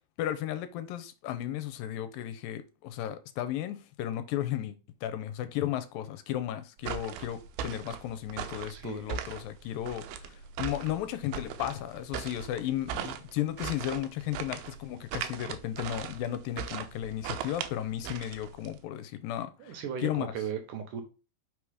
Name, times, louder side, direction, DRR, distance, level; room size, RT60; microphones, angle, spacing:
voice 1, 0.2-4.8 5.0-20.3, left 12 dB, 80° left, 2.4 m, -34 dB
sound 1, 6.8-18.8, right 8 dB, 85° right, 2.6 m, -39 dB
voice 2, 8.7-9.1 19.6-21.0, right 7 dB, 70° right, 2.2 m, -36 dB
5.8 x 4.7 x 4.9 m
omnidirectional pair, 4.2 m